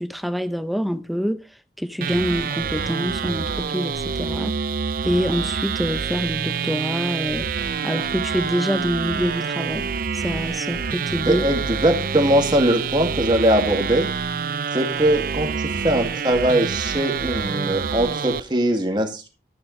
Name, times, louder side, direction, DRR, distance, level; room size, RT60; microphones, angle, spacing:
voice 1, 0.0-1.4 1.8-4.5 5.0-7.5 7.8-9.9 10.1-11.4, equal, ahead, 0.7 m, -26 dB
sound 1, 2.0-18.4, right 6 dB, 50° right, 0.5 m, -27 dB
voice 2, 11.3-14.1 14.7-19.3, right 1 dB, 25° right, 2.2 m, -21 dB
13.0 x 10.0 x 3.2 m
head